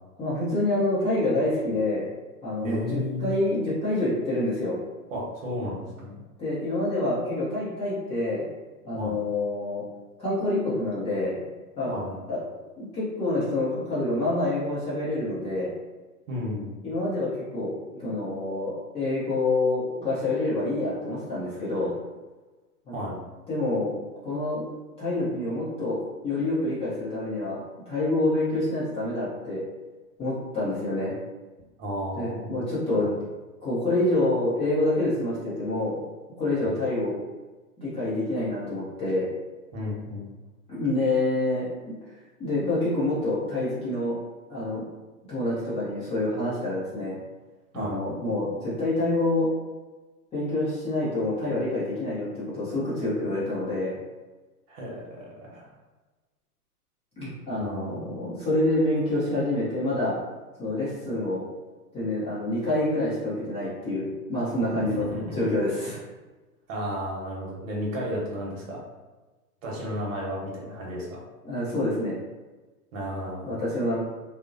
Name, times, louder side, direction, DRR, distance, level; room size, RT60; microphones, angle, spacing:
voice 1, 0.2-2.1 2.4-4.8 6.4-8.5 8.8-9.8 10.2-11.4 11.8-11.9 12.3-12.4 12.8-15.7 16.8-17.7 18.0-21.9 22.9-23.0 23.5-23.9 24.2-24.6 25.0-26.0 26.2-27.6 27.9-29.6 30.2-31.1 32.2-33.1 33.6-36.0 36.4-37.1 37.8-39.3 40.7-41.7 42.4-44.2 44.5-44.8 45.2-47.1 47.7-49.5 50.3-54.0 57.2-60.1 60.6-61.4 61.9-66.0 71.4-72.2 73.4-74.0, left 2 dB, 15° left, -10 dB, 0.6 m, -27 dB
voice 2, 2.6-3.3 5.1-6.2 9.0-9.2 11.9-12.2 16.3-16.8 22.9-23.2 31.8-32.6 33.0-33.1 36.6-36.7 39.7-40.3 47.7-48.0 54.7-55.7 57.6-58.2 65.1-65.4 66.7-68.8 69.6-71.2 72.9-73.6, equal, 55° right, -3 dB, 1.0 m, -33 dB
2.6 x 2.1 x 2.5 m, 1.2 s
hypercardioid pair, 115°, 47 cm